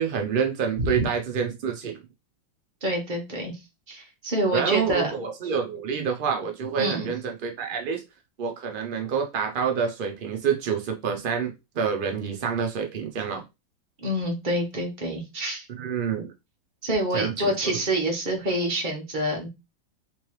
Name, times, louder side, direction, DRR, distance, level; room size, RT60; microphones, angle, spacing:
voice 1, 0.0-2.0 4.5-8.0 8.4-13.4 15.8-16.3 17.1-17.5, right 7 dB, 70° right, 0.5 m, -27 dB
voice 2, 2.8-3.5 3.9-5.1 6.8-7.1 14.0-15.7 16.8-19.5, right 1 dB, 35° right, 1.1 m, -27 dB
3.5 x 3.0 x 3.0 m
omnidirectional pair, 1.7 m